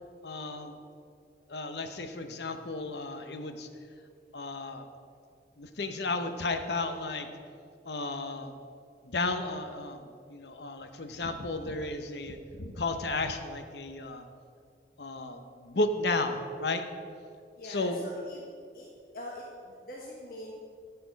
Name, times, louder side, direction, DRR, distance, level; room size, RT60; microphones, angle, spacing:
voice 1, 0.2-0.8 1.5-3.7 4.3-4.8 5.6-7.3 7.8-8.6 9.0-14.2 15.0-16.8 17.6-18.0, left 2 dB, 75° left, 7 dB, 0.9 m, -33 dB
voice 2, 17.6-18.9 19.1-20.5, left 1 dB, 55° left, -3 dB, 1.3 m, -44 dB
13.5 x 6.9 x 5.2 m, 2.4 s
head